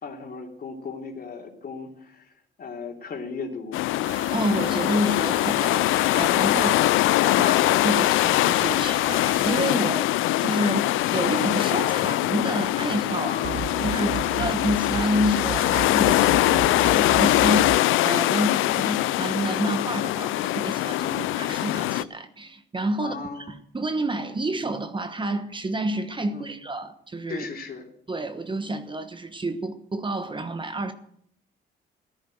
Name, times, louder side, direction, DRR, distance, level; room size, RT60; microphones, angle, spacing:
voice 1, 0.0-3.8 13.1-14.5 20.9-21.7 23.0-23.5 26.3-26.6 27.3-27.9, left 4 dB, 50° left, 3.1 m, -38 dB
sound 1, 3.7-22.0, left 16 dB, 90° left, 0.5 m, -22 dB
sound 2, 4.0-9.6, right 6 dB, 70° right, 1.6 m, -41 dB
voice 2, 4.1-6.8 7.2-10.1 10.4-13.3 13.8-21.1 21.4-23.1 23.5-27.4 28.1-30.9, right 1 dB, 25° right, 1.2 m, -29 dB
sound 3, 13.4-17.8, right 10 dB, 45° right, 0.5 m, -34 dB
14.0 x 10.0 x 7.8 m
cardioid pair, 90°, 20 cm